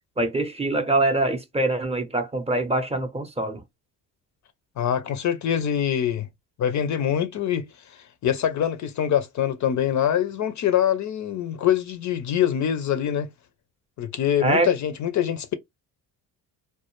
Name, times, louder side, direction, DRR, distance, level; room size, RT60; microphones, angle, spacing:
voice 1, 0.2-3.6 14.4-14.7, right 2 dB, 15° right, 0.6 m, -24 dB
voice 2, 4.8-6.3 6.6-13.3 14.0-15.5, left 9 dB, 45° left, 0.4 m, -24 dB
2.2 x 2.0 x 2.9 m
supercardioid pair, 75°, 41 cm